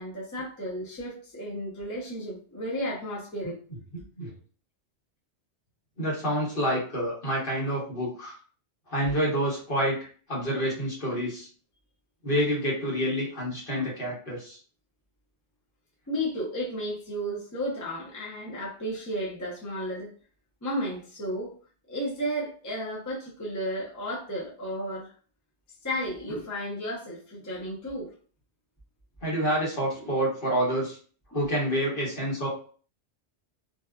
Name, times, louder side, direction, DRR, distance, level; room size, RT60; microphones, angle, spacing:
voice 1, 0.0-3.6 16.1-20.1 20.6-21.5 21.9-25.1 25.8-28.1, equal, 20° left, -5 dB, 0.5 m, -33 dB
voice 2, 3.9-4.3 6.0-8.3 8.9-11.5 12.2-14.6 29.2-31.0 31.3-32.5, equal, 50° left, -4 dB, 1.3 m, -28 dB
2.7 x 2.3 x 2.3 m, 0.42 s
omnidirectional pair, 1.2 m